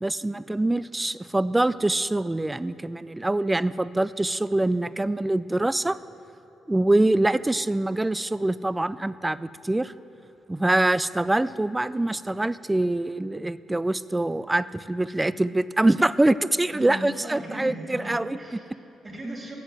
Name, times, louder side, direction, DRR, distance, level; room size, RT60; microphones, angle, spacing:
voice 1, 0.0-6.0 6.7-9.9 10.5-18.4, right 2 dB, 15° right, 17 dB, 0.3 m, -24 dB
voice 2, 16.7-19.6, right 1 dB, 30° right, 0 dB, 2.8 m, -37 dB
11.5 x 7.6 x 8.1 m, 3.0 s
cardioid pair, 90°, 0 cm